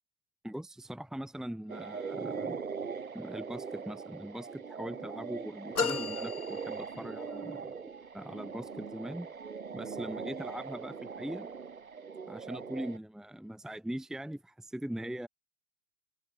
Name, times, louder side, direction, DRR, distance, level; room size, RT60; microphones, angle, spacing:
voice 1, 0.4-2.6 3.1-7.6 8.1-9.3 9.7-11.5 12.3-15.3, right 1 dB, ahead, 1.8 m, -41 dB
sound 1, 1.7-13.0, right 5 dB, 75° right, 6.2 m, -41 dB
sound 2, 5.7-7.4, left 5 dB, 90° left, 0.9 m, -35 dB
figure-of-eight pair, 100°, 42 cm